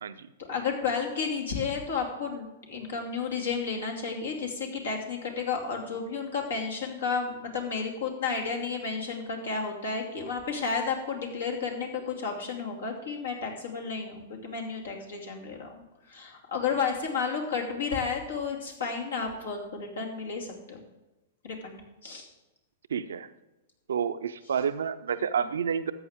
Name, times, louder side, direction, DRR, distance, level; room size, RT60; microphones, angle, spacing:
voice 1, 0.4-15.7 16.1-20.8 21.4-22.3, left 5 dB, 80° left, 1 dB, 2.4 m, -32 dB
voice 2, 22.9-23.3 23.9-25.9, right 7 dB, 80° right, 12 dB, 0.5 m, -29 dB
13.5 x 8.2 x 3.6 m, 1.0 s
hypercardioid pair, 115°, 0 cm